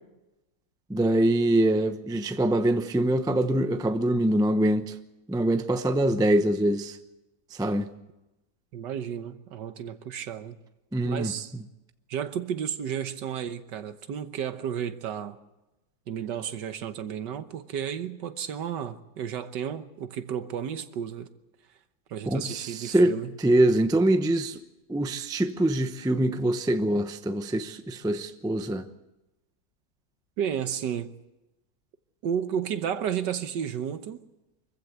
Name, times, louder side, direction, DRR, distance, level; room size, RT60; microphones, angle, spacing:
voice 1, 0.9-5.0 5.3-7.0 7.5-7.9 10.9-11.3 22.3-24.6 24.9-28.9, right 1 dB, 5° right, 0.4 m, -24 dB
voice 2, 8.7-10.6 11.0-11.5 12.1-15.4 16.1-21.3 22.1-23.4 30.4-31.1 32.2-34.2, right 8 dB, 75° right, 1.6 m, -32 dB
24.5 x 15.0 x 8.1 m
omnidirectional pair, 1.9 m